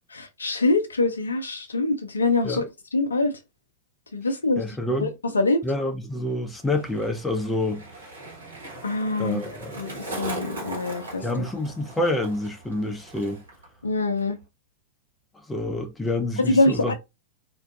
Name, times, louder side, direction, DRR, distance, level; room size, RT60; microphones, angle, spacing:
voice 1, 0.1-2.6 2.9-3.3 4.1-4.6 5.0-5.1 5.3-5.6 8.8-9.4 9.8-9.9 10.2-11.2 13.8-14.4 16.4-16.9, left 2 dB, 75° left, 0.4 m, -24 dB
voice 2, 4.6-5.1 5.6-7.8 9.2-9.7 11.2-13.4 15.5-16.9, left 1 dB, 10° left, 0.5 m, -27 dB
Skateboard, 6.1-13.7 13.9-14.4, right 2 dB, 70° right, 1.1 m, -39 dB
2.5 x 2.2 x 2.3 m
figure-of-eight pair, 90°, 0 cm